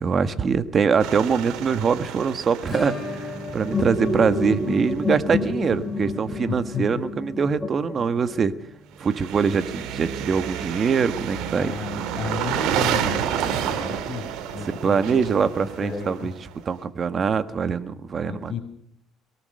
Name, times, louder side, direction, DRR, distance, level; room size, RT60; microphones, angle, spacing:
voice 1, 0.0-8.5 9.0-11.7 14.8-16.3 16.6-18.5, right 6 dB, 40° right, 11 dB, 1.5 m, -23 dB
sound 1, 1.0-4.9 9.0-16.7, right 8 dB, 85° right, 2.8 m, -30 dB
Acoustic guitar / Strum, 2.7-11.3 11.5-11.6 11.9-12.0 12.4-12.5 14.5-14.6 15.8-15.9, left 2 dB, 20° left, 7.9 m, -40 dB
sound 2, 3.7-8.5, left 3 dB, 5° left, 7.3 m, -28 dB
voice 2, 6.5-7.0 11.6-13.3 13.7-16.3 18.2-18.6, left 6 dB, 40° left, 2 dB, 5.4 m, -34 dB
23.0 x 18.0 x 6.6 m, 0.69 s
cardioid pair, 110°, 0 cm